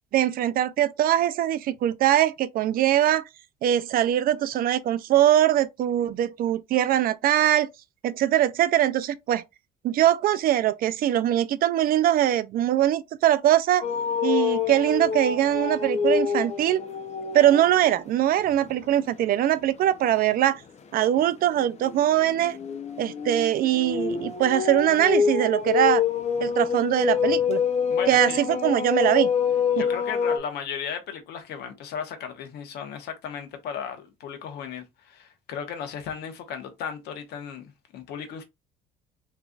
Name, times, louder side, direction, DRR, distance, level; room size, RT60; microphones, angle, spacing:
voice 1, 0.1-3.2 3.6-7.7 8.0-9.4 9.8-13.9 14.2-16.8 17.3-20.6 20.9-22.6 23.0-26.0 26.4-27.6 28.1-29.3 29.8-29.9, right 12 dB, 60° right, 0.4 m, -22 dB
sound 1, 13.8-18.0 18.4-18.7 21.1-30.4, left 7 dB, 40° left, 0.7 m, -26 dB
voice 2, 27.9-28.4 29.8-38.4, left 7 dB, 75° left, 1.1 m, -35 dB
3.8 x 3.2 x 2.3 m
cardioid pair, 110°, 17 cm